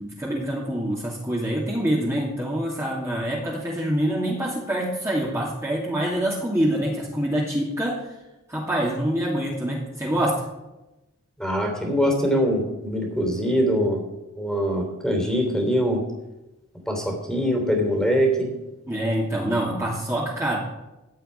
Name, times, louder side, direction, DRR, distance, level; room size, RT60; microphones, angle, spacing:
voice 1, 0.0-8.0 8.5-10.4 18.9-20.6, right 1 dB, 15° right, -5 dB, 2.6 m, -25 dB
voice 2, 11.4-14.0 14.4-16.0 16.9-18.5, equal, 5° left, 2 dB, 3.2 m, -23 dB
15.5 x 5.7 x 9.8 m, 0.98 s
head